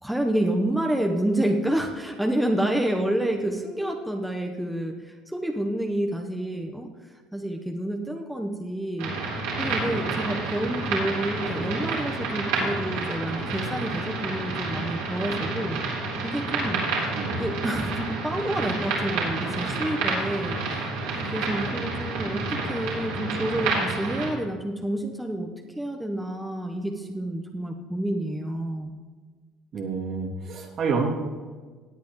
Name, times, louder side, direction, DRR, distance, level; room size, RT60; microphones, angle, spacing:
voice 1, 0.0-9.1 9.6-15.8 16.2-16.8 17.4-25.5 25.8-28.9, right 1 dB, 5° right, 2 dB, 1.1 m, -29 dB
sound 1, 9.0-24.3, right 3 dB, 80° right, 3.8 m, -29 dB
voice 2, 29.7-31.1, right 5 dB, 50° right, -1 dB, 2.5 m, -29 dB
17.5 x 8.4 x 3.2 m, 1.4 s
supercardioid pair, 85°, 0 cm